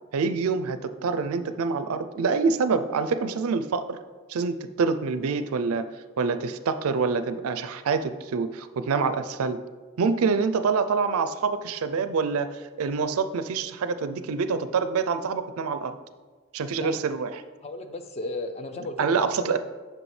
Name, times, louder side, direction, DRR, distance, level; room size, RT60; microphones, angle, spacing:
voice 1, 0.1-4.0 4.3-5.9 6.2-9.6 10.0-16.0 16.5-17.3 19.0-19.6, right 5 dB, 75° right, 11 dB, 0.4 m, -26 dB
voice 2, 17.6-19.6, left 2 dB, 30° left, 8 dB, 0.4 m, -35 dB
7.8 x 5.8 x 3.2 m, 1.4 s
head